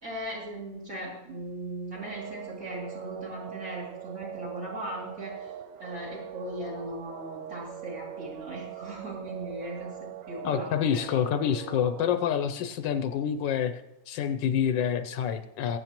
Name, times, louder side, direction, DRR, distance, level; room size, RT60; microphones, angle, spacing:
voice 1, 0.0-11.0, right 1 dB, 45° right, -5 dB, 3.1 m, -38 dB
sound 1, 1.9-12.1, right 11 dB, 80° right, 1.3 m, -42 dB
voice 2, 10.4-15.8, left 8 dB, 85° left, 9 dB, 1.3 m, -27 dB
20.0 x 8.8 x 3.0 m, 0.93 s
omnidirectional pair, 1.9 m